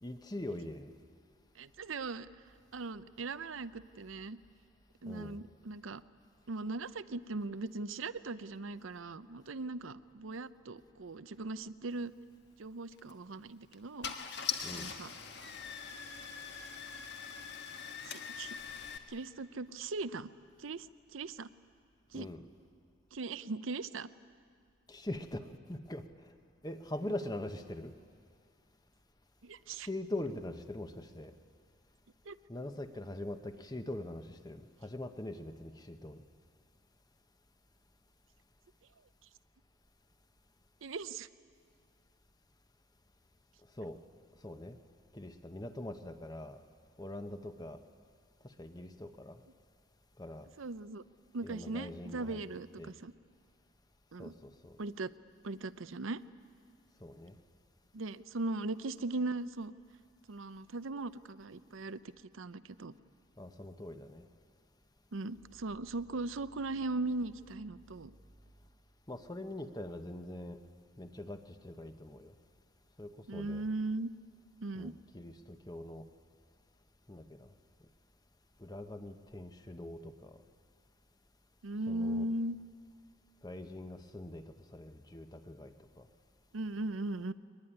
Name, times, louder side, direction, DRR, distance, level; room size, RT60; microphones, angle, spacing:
voice 1, 0.0-0.9 5.1-5.4 14.6-14.9 22.1-22.5 24.9-26.0 26.6-27.9 29.8-31.3 32.5-36.2 43.8-44.0 44.4-44.8 45.1-46.6 47.0-47.8 48.6-49.4 50.2-50.5 51.4-52.4 52.8-52.9 54.2-54.8 57.0-57.3 63.4-64.2 69.1-70.6 71.0-72.3 73.0-73.7 74.7-76.1 77.1-77.5 78.6-80.4 81.9-82.3 83.4-84.4 84.7-86.1, left 1 dB, 20° left, 8 dB, 0.9 m, -43 dB
voice 2, 1.6-2.3 2.7-4.4 5.0-6.0 6.5-12.1 12.6-14.1 14.7-15.1 18.1-18.6 19.1-20.3 20.6-20.9 21.1-21.5 22.1-22.3 23.1-24.1 29.4-29.9 32.3-32.4 40.8-41.3 50.6-51.0 51.3-53.1 54.1-54.3 54.8-55.1 55.4-56.2 57.9-59.7 60.3-62.0 62.3-62.9 65.1-68.1 73.3-74.1 74.6-74.9 81.6-82.6 86.5-87.3, right 2 dB, 75° right, 15 dB, 0.7 m, -39 dB
Car / Engine starting, 12.9-13.1 13.7-13.8 14.0-19.0, left 6 dB, 55° left, 1.6 m, -42 dB
22.5 x 20.5 x 10.0 m, 2.2 s
head